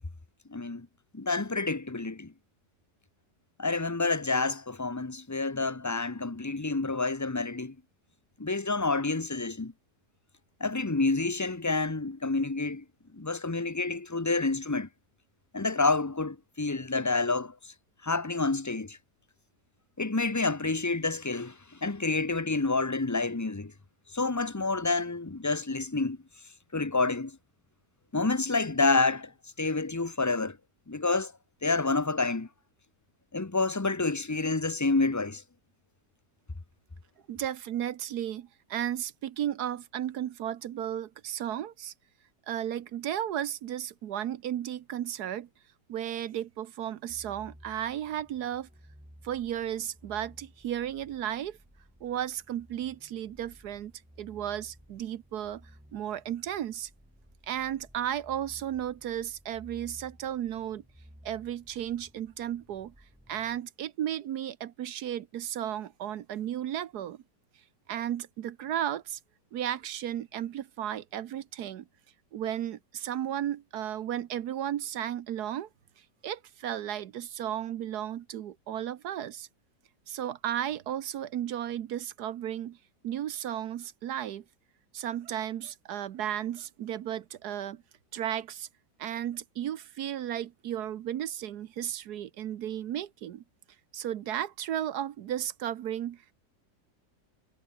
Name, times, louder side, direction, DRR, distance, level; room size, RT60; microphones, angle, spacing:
voice 1, 0.5-0.9 1.1-2.3 3.6-7.7 8.4-9.7 10.6-12.8 13.1-14.9 15.5-17.7 18.0-19.0 20.0-23.7 24.1-26.2 26.7-27.4 28.1-29.3 29.6-30.6 30.9-31.3 31.6-32.5 33.3-35.4, left 3 dB, 15° left, 0.6 m, -28 dB
voice 2, 37.3-41.9 42.5-45.5 45.9-48.7 49.2-51.6 52.0-53.9 54.2-56.9 57.5-60.8 61.2-62.9 63.3-67.2 67.9-69.2 69.5-71.8 72.3-75.7 76.2-79.5 80.1-82.8 83.0-84.4 84.9-87.8 88.1-88.7 89.0-93.4 93.9-96.3, right 11 dB, 65° right, 1.3 m, -34 dB
sound 1, 47.1-63.6, equal, 5° right, 5.5 m, -56 dB
omnidirectional pair, 1.9 m